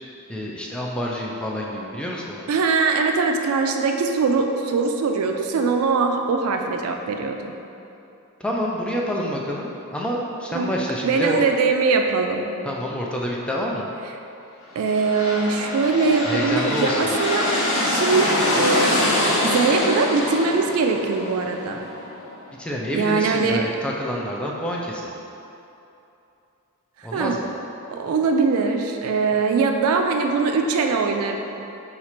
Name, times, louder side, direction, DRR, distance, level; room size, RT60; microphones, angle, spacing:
voice 1, 0.3-2.5 8.4-11.4 12.6-13.9 16.3-17.2 22.6-25.1 27.0-27.5, equal, 5° left, -3 dB, 0.3 m, -28 dB
voice 2, 2.5-7.5 10.5-10.7 11.0-12.6 14.8-17.5 17.8-19.0 19.5-21.8 22.9-23.7 27.1-27.4 27.9-31.4, right 4 dB, 75° right, 4 dB, 0.4 m, -21 dB
sound 1, 14.8-22.4, left 1 dB, 85° left, 0.9 m, -24 dB
4.2 x 2.4 x 4.3 m, 2.8 s
head